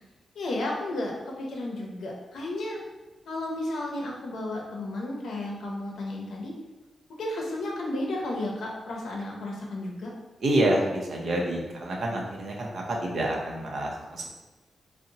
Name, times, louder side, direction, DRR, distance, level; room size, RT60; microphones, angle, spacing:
voice 1, 0.4-2.8 3.3-6.5 7.1-10.1, left 1 dB, 80° left, -1 dB, 0.6 m, -33 dB
voice 2, 10.4-14.3, right 1 dB, 55° right, -1 dB, 0.6 m, -27 dB
3.8 x 2.1 x 2.7 m, 1.1 s
wide cardioid pair, 170°, 0 cm